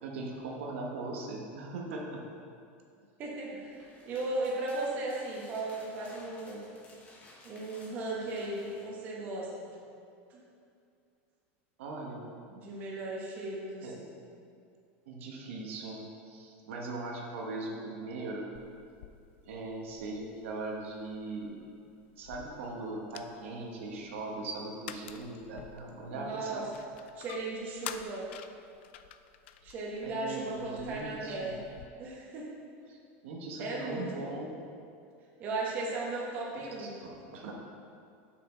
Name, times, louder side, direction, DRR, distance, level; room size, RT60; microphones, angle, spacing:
voice 1, 0.0-2.3 11.8-12.3 13.8-13.9 15.1-18.5 19.4-21.7 22.2-26.7 29.6-29.7 30.0-31.6 32.9-33.0 33.2-34.6 36.5-37.5, right 2 dB, 85° right, -1 dB, 1.2 m, -40 dB
voice 2, 3.2-6.6 7.4-9.7 10.3-10.4 12.5-14.1 26.1-26.6 27.2-28.3 29.6-31.6 32.0-32.5 33.6-34.4 35.4-36.9, right 2 dB, 25° right, -4 dB, 1.1 m, -36 dB
sound 1, 3.6-8.9, left 2 dB, 20° left, 1.0 m, -56 dB
sound 2, 18.5-31.9, left 10 dB, 65° left, 0.4 m, -50 dB
6.8 x 6.1 x 4.3 m, 2.5 s
supercardioid pair, 180°, 7 cm